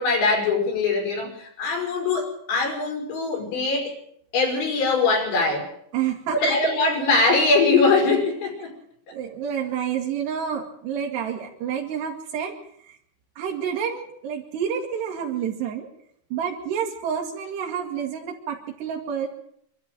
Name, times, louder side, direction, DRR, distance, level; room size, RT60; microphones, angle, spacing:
voice 1, 0.0-3.9 4.3-5.7 6.3-8.7, left 3 dB, 75° left, 1 dB, 7.5 m, -22 dB
voice 2, 5.9-6.6 9.1-13.0 13.4-15.9 16.3-19.3, right 8 dB, 70° right, -1 dB, 4.0 m, -29 dB
25.0 x 13.0 x 9.2 m, 0.71 s
omnidirectional pair, 5.2 m